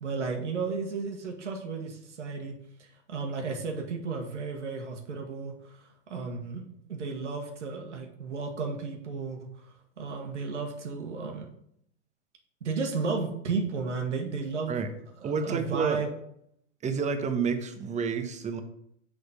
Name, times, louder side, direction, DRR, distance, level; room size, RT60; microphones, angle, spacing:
voice 1, 0.0-2.5 2.8-6.6 6.9-9.5 10.0-11.5 12.6-14.8 15.2-16.1, right 4 dB, 85° right, 2 dB, 1.5 m, -33 dB
voice 2, 15.2-16.0 16.8-18.6, right 5 dB, 20° right, 7 dB, 1.0 m, -29 dB
6.2 x 5.2 x 5.1 m, 0.71 s
hypercardioid pair, 105°, 35 cm